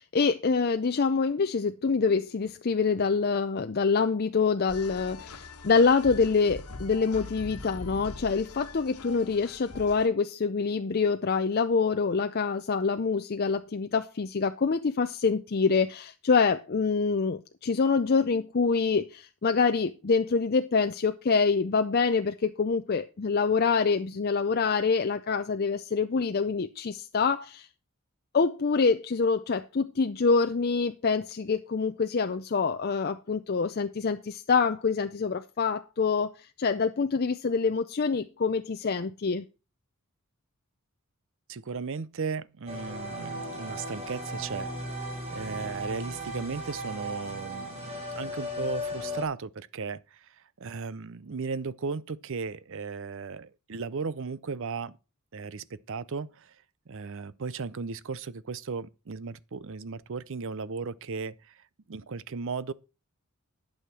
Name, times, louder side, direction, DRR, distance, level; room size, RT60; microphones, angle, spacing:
voice 1, 0.0-27.7 28.3-39.4, left 5 dB, 45° left, 0.5 m, -26 dB
sound 1, 4.7-10.1, left 2 dB, 85° left, 1.3 m, -43 dB
voice 2, 41.5-44.7 45.3-50.3 50.6-55.0 55.3-56.5 56.9-61.6 61.9-62.7, right 4 dB, 60° right, 0.6 m, -36 dB
sound 2, 42.7-49.2, equal, 30° right, 3.4 m, -36 dB
11.0 x 6.5 x 5.9 m
head